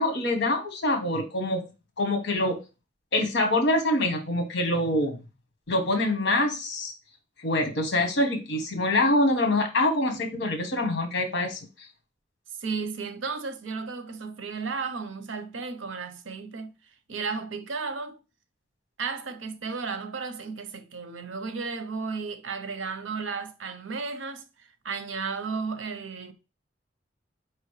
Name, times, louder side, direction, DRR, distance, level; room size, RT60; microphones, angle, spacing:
voice 1, 0.0-1.6 2.0-2.6 3.1-5.2 5.7-6.9 7.4-11.9, left 1 dB, 65° left, 1.1 m, -25 dB
voice 2, 12.6-16.7 17.1-18.2 19.0-26.3, right 4 dB, 85° right, 0.7 m, -34 dB
4.8 x 3.0 x 3.2 m
head